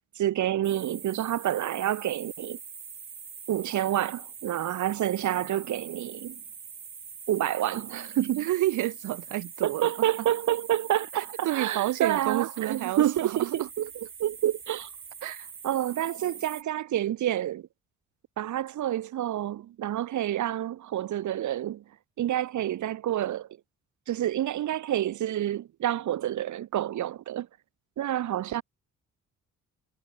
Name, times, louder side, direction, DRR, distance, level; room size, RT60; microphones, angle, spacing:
voice 1, 0.1-2.6 3.5-6.3 7.3-8.4 9.6-13.9 14.2-14.9 15.6-17.6 18.4-21.8 22.2-23.5 24.1-27.5 28.0-28.6, right 12 dB, 70° right, 3.1 m, -28 dB
sound 1, 0.6-16.6, right 6 dB, 40° right, 3.8 m, -44 dB
voice 2, 8.4-10.1 11.1-13.7 15.2-15.5, right 16 dB, 90° right, 3.3 m, -30 dB
cardioid pair, 90°, 30 cm